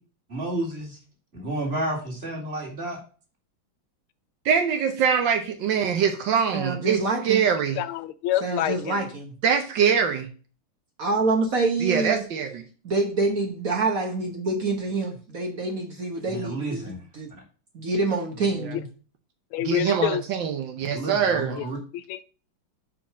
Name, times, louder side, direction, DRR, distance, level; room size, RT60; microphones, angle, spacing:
voice 1, 0.3-1.0 1.3-3.0 16.3-17.0 20.9-21.8, right 1 dB, 30° right, -2 dB, 2.5 m, -31 dB
voice 2, 4.4-7.8 9.4-10.3 11.8-12.6 19.6-21.6, right 7 dB, 70° right, 6 dB, 1.4 m, -23 dB
voice 3, 6.5-7.4 8.4-9.3 11.0-12.2 12.8-16.8 17.1-17.3 17.7-18.9, right 3 dB, 50° right, 2 dB, 1.4 m, -26 dB
voice 4, 7.8-9.1 19.5-20.2 21.6-21.7 21.9-22.2, left 12 dB, 85° left, 14 dB, 1.4 m, -27 dB
5.8 x 5.0 x 5.7 m, 0.38 s
omnidirectional pair, 2.3 m